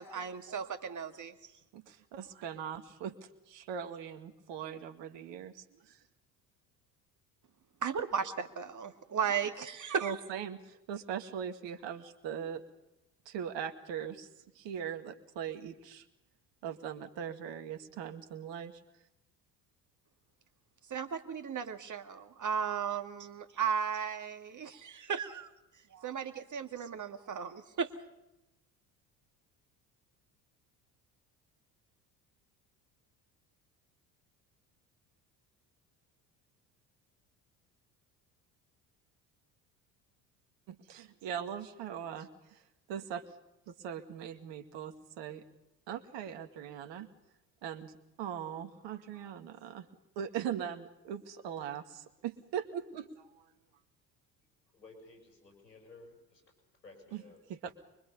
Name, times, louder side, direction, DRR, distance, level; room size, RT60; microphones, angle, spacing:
voice 1, 0.0-1.3 7.8-10.1 20.9-25.5 25.9-27.9, right 7 dB, 35° right, 8 dB, 2.2 m, -35 dB
voice 2, 1.7-3.1 3.5-6.0 10.0-12.6 13.3-14.3 14.6-16.0 16.6-18.7 40.7-42.6 42.9-43.2 43.7-45.4 45.9-47.1 47.6-47.9 48.2-49.9 50.2-53.5 57.1-57.2 57.5-57.7, right 8 dB, 60° right, 8 dB, 2.2 m, -40 dB
voice 3, 54.7-56.4 56.8-57.4, left 3 dB, 85° left, 3 dB, 7.2 m, -55 dB
24.5 x 24.0 x 5.5 m, 0.91 s
hypercardioid pair, 60°, 50 cm